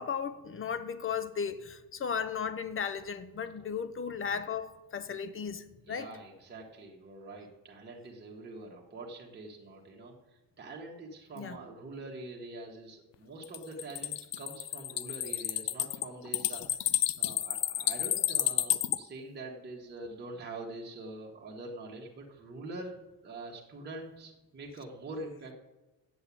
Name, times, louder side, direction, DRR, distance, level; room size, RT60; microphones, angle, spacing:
voice 1, 0.0-6.1 11.4-11.6, left 6 dB, 30° left, 0.7 m, -35 dB
voice 2, 5.8-16.9 17.2-25.5, right 2 dB, 25° right, 1.5 m, -44 dB
sound 1, 13.4-19.0, left 14 dB, 90° left, 0.7 m, -30 dB
7.9 x 7.2 x 8.4 m
cardioid pair, 150°, 41 cm